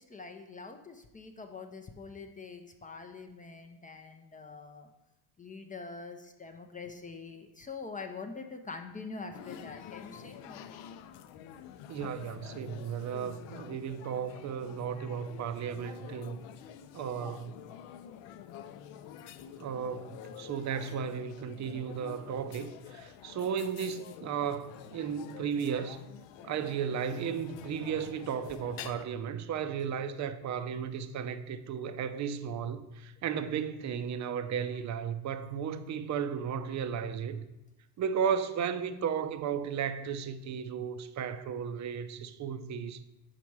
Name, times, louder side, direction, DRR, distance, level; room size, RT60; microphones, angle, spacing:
voice 1, 0.0-4.9 5.4-10.8 15.8-15.9 19.4-19.5 26.4-26.5 34.3-34.4, left 4 dB, 20° left, 0.5 m, -45 dB
sound 1, 9.3-29.1, left 9 dB, 70° left, 0.6 m, -48 dB
voice 2, 11.9-16.4 16.9-17.5 19.6-26.0 26.4-37.4 38.0-43.0, right 7 dB, 40° right, 0.5 m, -34 dB
5.8 x 4.1 x 4.7 m
supercardioid pair, 95°, 48 cm